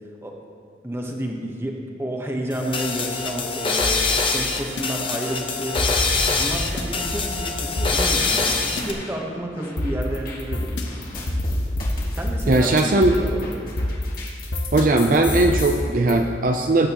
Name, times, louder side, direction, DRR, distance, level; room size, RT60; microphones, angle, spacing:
voice 1, 0.8-1.7 2.0-5.8 6.3-10.8 12.1-13.7, right 1 dB, 15° right, 0 dB, 1.1 m, -30 dB
sound 1, 2.5-8.9, left 4 dB, 30° left, 0.9 m, -24 dB
sound 2, 3.8-4.8 5.8-6.8 7.8-8.8 9.8-15.6, left 1 dB, 85° left, 1.1 m, -27 dB
sound 3, 5.8-7.5 7.9-9.3 9.5-14.7 15.0-16.1, left 2 dB, 50° left, 2.1 m, -35 dB
voice 2, 12.5-13.1 14.7-16.9, right 2 dB, 50° right, 4 dB, 0.5 m, -18 dB
19.0 x 9.0 x 3.0 m, 2.2 s
head